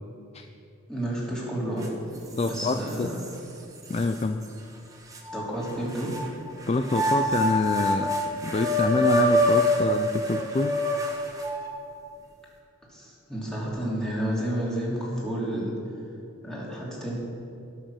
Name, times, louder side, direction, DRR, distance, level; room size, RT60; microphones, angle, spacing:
voice 1, 0.9-1.9 2.5-3.2 5.3-6.1 12.9-15.7 16.4-17.2, right 1 dB, 5° left, -6 dB, 2.8 m, -30 dB
sound 1, 1.8-1.9 2.4-3.3 3.9-4.0 5.1-6.3 6.8-11.8, equal, 15° right, 1.1 m, -25 dB
voice 2, 2.4-3.1 3.9-4.4 6.7-10.7, left 3 dB, 30° left, 7 dB, 0.4 m, -26 dB
18.0 x 6.4 x 6.3 m, 2.7 s
head